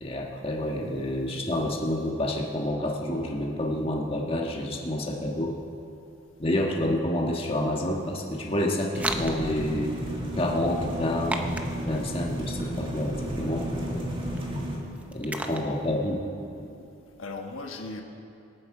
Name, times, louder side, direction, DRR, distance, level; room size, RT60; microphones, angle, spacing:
voice 1, 0.0-5.5 6.4-9.9 10.3-11.5 11.8-14.1 15.1-16.2, left 1 dB, 30° left, -1 dB, 1.5 m, -28 dB
sound 1, 7.5-16.2, right 1 dB, 5° right, 0.6 m, -39 dB
sound 2, 8.9-14.8, equal, 25° right, 2.0 m, -33 dB
voice 2, 17.2-18.0, left 3 dB, 90° left, 3 dB, 1.4 m, -38 dB
24.5 x 8.6 x 4.9 m, 2.8 s
head